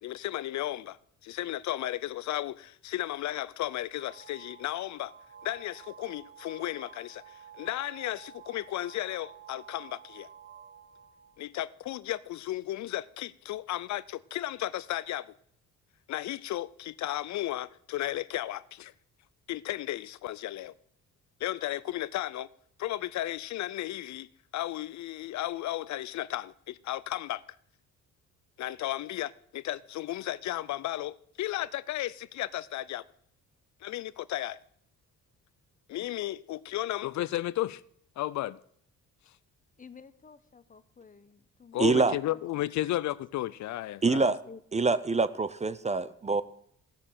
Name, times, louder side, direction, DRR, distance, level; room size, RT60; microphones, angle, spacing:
voice 1, 0.0-5.1 5.4-10.3 11.4-15.3 16.1-18.9 19.5-20.7 21.4-22.5 22.8-24.3 24.5-27.4 28.6-33.0 33.8-34.6 35.9-37.8 38.2-38.6 41.7-44.3, left 14 dB, 70° left, 0.5 m, -34 dB
sound 1, 3.9-11.5, right 8 dB, 40° right, 1.0 m, -51 dB
voice 2, 39.8-41.8 42.3-42.4 44.4-44.6, left 5 dB, 25° left, 0.9 m, -51 dB
voice 3, 41.8-42.2 44.0-44.4 44.7-46.4, right 4 dB, 20° right, 0.6 m, -25 dB
15.5 x 6.6 x 7.4 m
cardioid pair, 90°, 30 cm